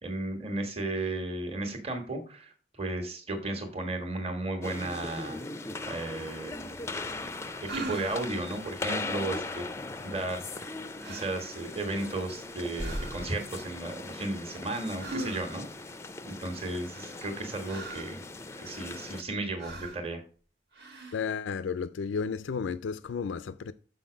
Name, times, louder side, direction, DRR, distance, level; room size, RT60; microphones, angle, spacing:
voice 1, 0.0-5.4 5.8-6.7 7.7-9.7 10.0-10.6 11.1-15.7 16.2-18.2 18.6-20.2, right 2 dB, 30° right, 1.5 m, -34 dB
sound 1, 4.6-19.2, left 3 dB, 15° left, 0.4 m, -39 dB
sound 2, 7.7-8.4 10.5-10.7 11.0-11.4 11.8-12.4 12.7-13.5 15.0-15.7 16.9-18.2 18.7-19.3 19.6-20.1 20.7-21.3, right 1 dB, 60° right, 1.3 m, -40 dB
voice 2, 21.1-23.7, left 6 dB, 80° left, 0.4 m, -33 dB
6.8 x 5.8 x 5.0 m
head